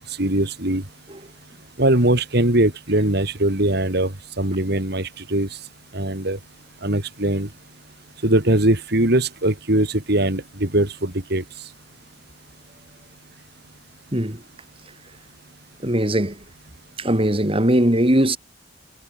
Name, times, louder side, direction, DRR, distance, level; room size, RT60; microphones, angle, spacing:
voice 1, 0.1-0.8 1.8-5.5 5.9-6.4 6.8-7.5 8.2-11.4, right 1 dB, 60° right, 3.4 m, -21 dB
voice 2, 15.8-16.4 17.0-18.4, right 1 dB, 30° right, 3.5 m, -19 dB
head